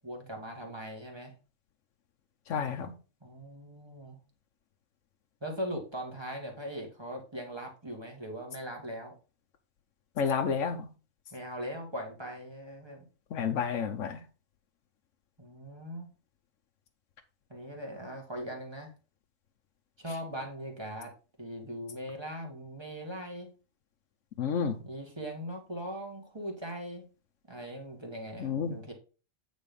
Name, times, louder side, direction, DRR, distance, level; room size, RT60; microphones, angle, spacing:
voice 1, 0.0-1.3 3.2-4.2 5.4-9.1 11.3-13.1 15.4-16.1 17.5-18.9 20.0-21.1 21.4-23.5 24.8-27.1 27.5-28.9, equal, 20° right, 2.0 m, -40 dB
voice 2, 2.5-2.9 10.2-10.9 13.3-14.2 24.4-24.8 28.4-28.8, left 6 dB, 75° left, 1.2 m, -30 dB
8.8 x 4.1 x 5.3 m
omnidirectional pair, 1.3 m